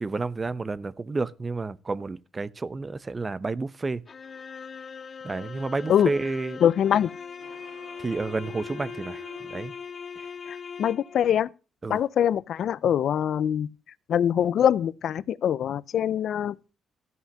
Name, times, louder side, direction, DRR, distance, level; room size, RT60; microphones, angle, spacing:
voice 1, 0.0-4.0 5.2-6.6 8.0-9.2 9.5-9.7 10.2-10.3 11.8-12.0, right 3 dB, 25° right, 0.8 m, -30 dB
sound 1, 4.1-11.3, left 6 dB, 40° left, 0.8 m, -40 dB
voice 2, 6.6-7.1 10.5-11.5 11.9-13.7 14.1-16.6, left 9 dB, 65° left, 0.5 m, -23 dB
sound 2, 7.4-10.3, right 6 dB, 90° right, 2.5 m, -50 dB
14.5 x 5.6 x 7.2 m
cardioid pair, 90°, 0 cm